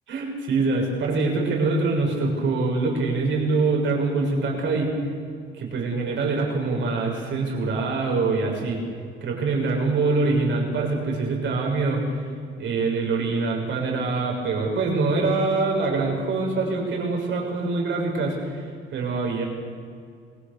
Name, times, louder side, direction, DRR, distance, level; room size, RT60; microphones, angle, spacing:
voice 1, 0.1-4.9 5.5-8.8 9.2-12.2 12.6-19.5, right 3 dB, 70° right, 0 dB, 6.6 m, -24 dB
27.0 x 20.0 x 6.9 m, 2.3 s
cardioid pair, 90°, 20 cm